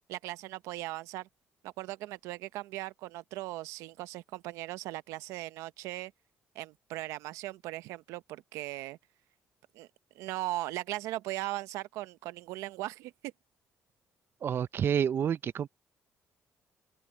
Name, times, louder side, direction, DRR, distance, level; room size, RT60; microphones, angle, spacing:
voice 1, 0.1-1.3 1.6-6.1 6.5-9.0 9.7-9.9 10.1-13.3, right 17 dB, 90° right, 0.7 m, -38 dB
voice 2, 14.4-15.7, right 8 dB, 50° right, 0.5 m, -29 dB
open air
cardioid pair, 80°, 5 cm